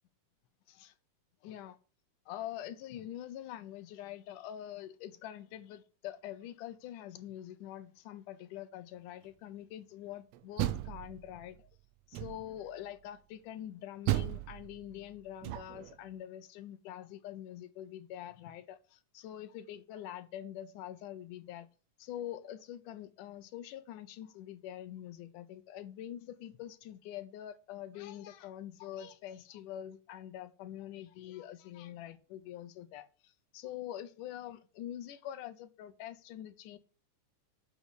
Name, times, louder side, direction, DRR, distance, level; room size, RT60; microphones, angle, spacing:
voice 1, 1.4-1.8 2.3-11.7 12.1-21.7 22.0-36.8, left 11 dB, 75° left, 2.4 m, -45 dB
Door, 10.3-11.6 12.1-12.7 14.1-16.0, right 15 dB, 85° right, 1.5 m, -35 dB
8.2 x 7.0 x 8.1 m
omnidirectional pair, 3.8 m